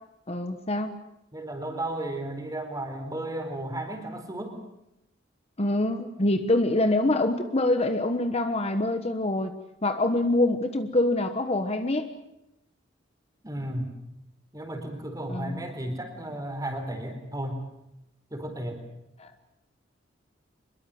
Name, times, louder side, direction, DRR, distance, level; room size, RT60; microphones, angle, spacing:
voice 1, 0.3-1.0 5.6-9.5 9.8-12.1 15.3-15.6 19.2-19.3, left 2 dB, 35° left, 8 dB, 1.3 m, -25 dB
voice 2, 1.3-4.6 13.4-13.9 14.5-17.6 18.3-18.8, right 1 dB, 20° right, 5 dB, 4.3 m, -34 dB
25.0 x 21.5 x 7.8 m, 0.85 s
head